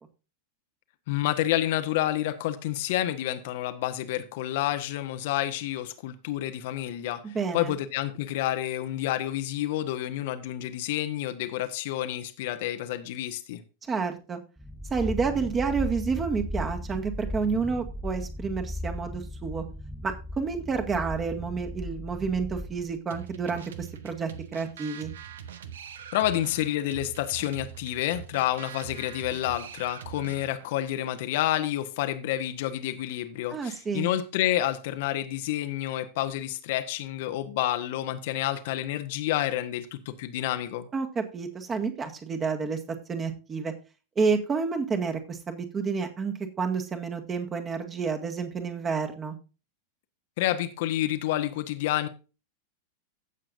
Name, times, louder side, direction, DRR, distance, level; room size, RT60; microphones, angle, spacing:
voice 1, 1.1-13.6 26.1-40.9 50.4-52.1, left 13 dB, 50° left, 1.1 m, -29 dB
voice 2, 7.2-7.7 13.9-14.4 14.9-19.6 20.0-25.1 33.5-34.1 40.9-42.8 43.1-43.7 44.2-49.4, right 5 dB, 20° right, 2.0 m, -29 dB
sound 1, 14.6-23.0, left 1 dB, ahead, 0.7 m, -36 dB
sound 2, 23.1-30.7, right 9 dB, 65° right, 1.2 m, -43 dB
16.0 x 7.5 x 2.6 m
figure-of-eight pair, 90°, 0 cm